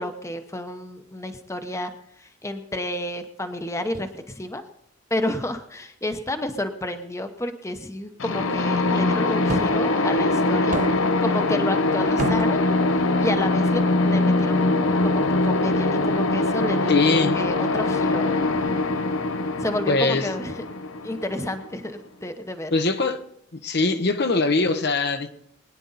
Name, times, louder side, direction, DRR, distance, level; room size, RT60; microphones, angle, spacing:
voice 1, 0.0-1.9 2.2-4.6 5.1-10.8 11.2-12.7 13.2-18.8 19.6-20.6 21.0-22.7, left 1 dB, 15° left, 0.9 m, -31 dB
sound 1, 8.2-21.9, left 2 dB, 85° left, 0.9 m, -22 dB
sound 2, 9.5-9.8 10.7-11.2 12.2-12.7, right 2 dB, 40° right, 0.7 m, -29 dB
voice 2, 16.9-17.4 19.9-20.3 22.7-23.2 23.6-25.3, left 3 dB, 55° left, 0.9 m, -21 dB
22.0 x 9.8 x 4.1 m
head